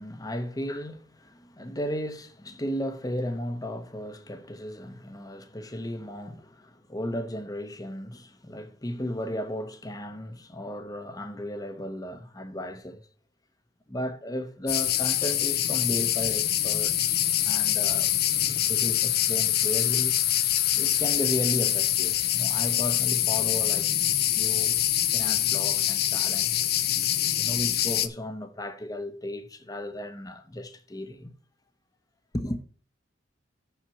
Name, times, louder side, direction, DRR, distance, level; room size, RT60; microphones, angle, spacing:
voice 1, 0.0-13.1 13.9-18.1 18.4-20.1 20.7-23.9 24.3-24.8 25.1-26.6 27.3-31.3 32.3-32.6, equal, 20° left, 1.0 m, -35 dB
sound 1, 14.7-28.1, left 12 dB, 55° left, 0.7 m, -25 dB
6.7 x 5.8 x 7.0 m
head